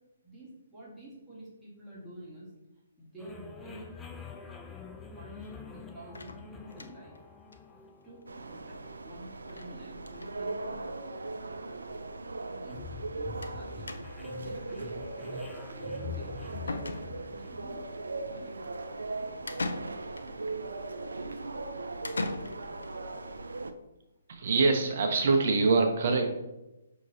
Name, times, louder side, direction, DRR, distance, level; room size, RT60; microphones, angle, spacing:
voice 1, 0.2-2.6 3.0-4.0 5.2-7.2 8.0-8.8 9.0-11.0 11.8-12.0 12.5-13.9 14.4-17.9 18.3-18.6, right 1 dB, 10° right, -8 dB, 1.5 m, -49 dB
sound 1, 3.2-18.6, left 5 dB, 10° left, 0.4 m, -46 dB
sound 2, 6.1-7.2 7.5-7.6 7.9-8.0 8.2-8.3 9.5-9.7 10.0-10.3 11.2-11.3 11.6-11.7 13.4-13.6 13.9-14.3 16.1-16.2 16.7-17.4 19.5-20.3 22.0-22.9, left 2 dB, 90° left, 0.4 m, -38 dB
sound 3, 8.3-23.7, right 3 dB, 90° right, 0.4 m, -39 dB
voice 2, 24.3-26.3, right 3 dB, 55° right, 3 dB, 0.7 m, -24 dB
6.0 x 2.9 x 2.7 m, 0.94 s
hypercardioid pair, 145°, 0 cm